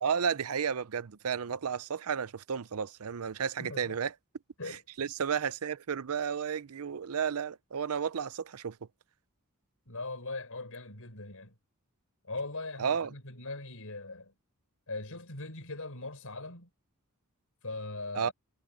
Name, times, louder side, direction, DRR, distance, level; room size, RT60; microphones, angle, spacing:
voice 1, 0.0-4.1 4.7-8.8 12.8-13.1 18.1-18.3, right 7 dB, 70° right, 0.6 m, -32 dB
voice 2, 3.6-3.9 4.6-4.8 9.9-11.5 12.3-14.3 14.9-16.7 17.6-18.3, left 2 dB, 65° left, 6.6 m, -40 dB
head